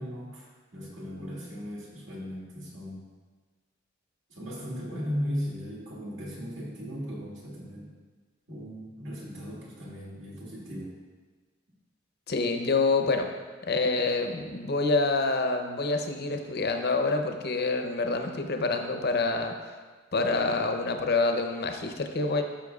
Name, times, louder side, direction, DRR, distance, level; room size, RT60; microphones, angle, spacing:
voice 1, 0.0-3.0 4.3-7.9 8.5-11.0, equal, 65° right, -5 dB, 2.2 m, -37 dB
voice 2, 12.3-13.3 13.7-19.5 20.1-22.4, left 3 dB, 55° left, 5 dB, 0.7 m, -27 dB
13.0 x 5.8 x 2.4 m, 1.4 s
head